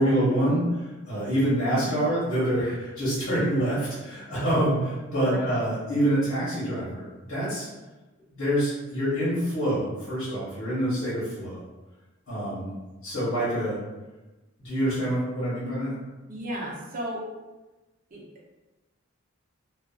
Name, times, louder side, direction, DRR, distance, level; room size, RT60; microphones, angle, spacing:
voice 1, 0.0-7.0 7.3-7.7 8.3-11.6 12.3-12.7 13.0-13.8 14.6-16.0, right 1 dB, 80° left, -10 dB, 1.0 m, -26 dB
voice 2, 16.3-17.2 18.1-18.2, right 1 dB, 40° right, -3 dB, 0.6 m, -34 dB
2.4 x 2.3 x 2.3 m, 1.1 s
head